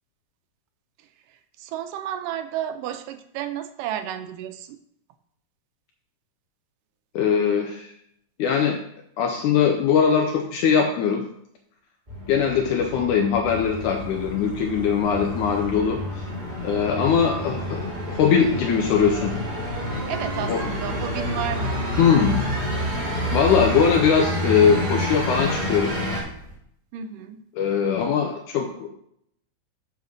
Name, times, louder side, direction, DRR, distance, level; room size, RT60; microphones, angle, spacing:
voice 1, 1.6-4.8 20.1-21.8 26.9-27.4, right 10 dB, 85° right, 9 dB, 2.3 m, -32 dB
voice 2, 7.2-7.9 8.4-8.8 9.2-11.2 12.3-16.3 16.6-17.8 18.1-19.4 20.5-20.7 22.0-22.4 23.3-25.9 27.6-28.9, left 7 dB, 75° left, 2 dB, 2.2 m, -21 dB
sound 1, 12.1-26.2, equal, 15° right, 2.1 m, -29 dB
sound 2, 13.4-26.6, right 2 dB, 35° right, 0.9 m, -43 dB
8.3 x 5.0 x 6.4 m, 0.71 s
omnidirectional pair, 3.8 m